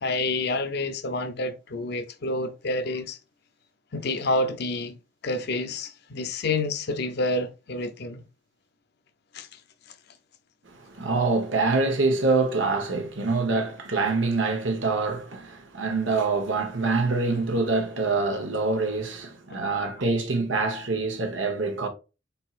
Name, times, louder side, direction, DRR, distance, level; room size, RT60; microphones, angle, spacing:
voice 1, 0.0-3.2 3.9-5.0 5.2-8.2 9.3-9.5 19.5-19.6, left 2 dB, 60° left, 0.7 m, -28 dB
voice 2, 10.7-21.9, right 3 dB, 75° right, 1.1 m, -25 dB
4.5 x 4.3 x 2.5 m
head